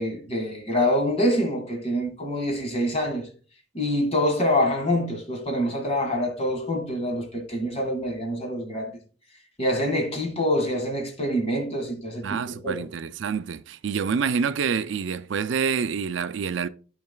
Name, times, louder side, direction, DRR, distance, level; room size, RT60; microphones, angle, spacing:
voice 1, 0.0-3.3 3.7-8.9 9.6-12.7, left 1 dB, 30° left, 1.7 m, -26 dB
voice 2, 12.2-16.7, right 6 dB, 75° right, 0.4 m, -27 dB
12.5 x 4.7 x 2.2 m
head